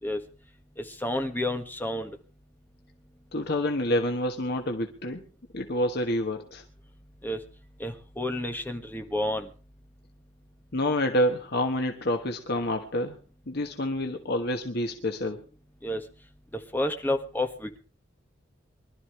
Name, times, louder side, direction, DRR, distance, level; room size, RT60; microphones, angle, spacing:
voice 1, 0.8-2.1 7.2-7.4 7.8-9.5 15.8-16.0 16.7-17.8, left 1 dB, 10° left, 5 dB, 1.7 m, -30 dB
voice 2, 3.3-5.2 5.5-6.6 10.7-13.2 13.5-15.4, left 1 dB, 60° left, 4 dB, 1.3 m, -28 dB
24.0 x 12.5 x 3.3 m, 0.36 s
head